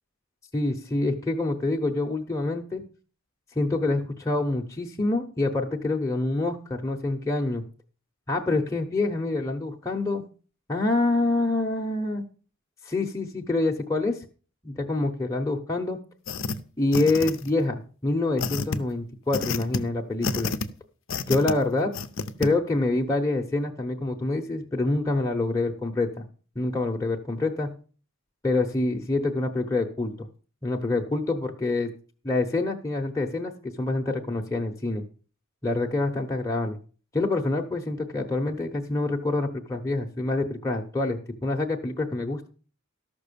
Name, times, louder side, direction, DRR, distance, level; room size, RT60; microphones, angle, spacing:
voice 1, 0.5-2.8 3.6-7.6 8.3-10.2 10.7-12.2 12.8-14.2 14.6-16.0 16.8-20.5 21.3-21.9 22.4-26.2 26.5-27.7 28.4-30.3 30.6-31.9 32.2-35.0 35.6-36.8 37.1-42.5, left 2 dB, 15° left, 0 dB, 0.9 m, -26 dB
sound 1, 16.3-16.5 16.9-17.6 18.4-18.8 19.3-19.8 20.2-20.7 21.1-21.5 21.9-22.5, left 4 dB, 60° left, 0.8 m, -29 dB
13.5 x 6.1 x 6.8 m, 0.40 s
head